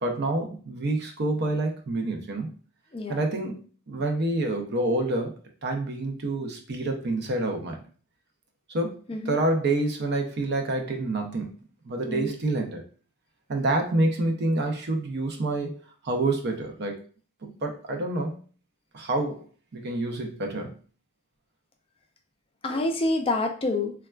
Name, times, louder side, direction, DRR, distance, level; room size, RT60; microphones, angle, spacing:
voice 1, 0.0-2.5 3.1-3.6 3.9-5.3 5.6-7.8 8.7-9.0 9.3-11.5 11.8-12.8 13.5-15.8 16.0-17.0 17.4-18.4 18.9-19.5 19.7-20.7, right 2 dB, 55° right, 3 dB, 0.5 m, -27 dB
voice 2, 22.6-23.9, left 2 dB, 30° left, 3 dB, 0.4 m, -27 dB
3.4 x 2.2 x 2.2 m, 0.40 s
head